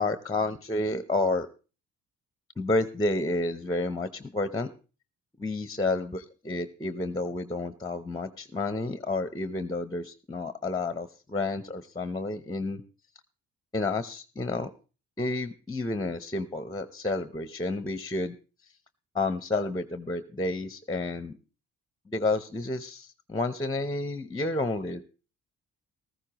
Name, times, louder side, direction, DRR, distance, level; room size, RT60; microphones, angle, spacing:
voice 1, 0.0-1.5 2.6-4.7 5.4-12.8 13.7-14.7 15.2-18.4 19.1-21.3 22.1-25.0, left 2 dB, 15° left, 11 dB, 0.8 m, -30 dB
14.5 x 14.0 x 3.0 m, 0.33 s
cardioid pair, 90°, 30 cm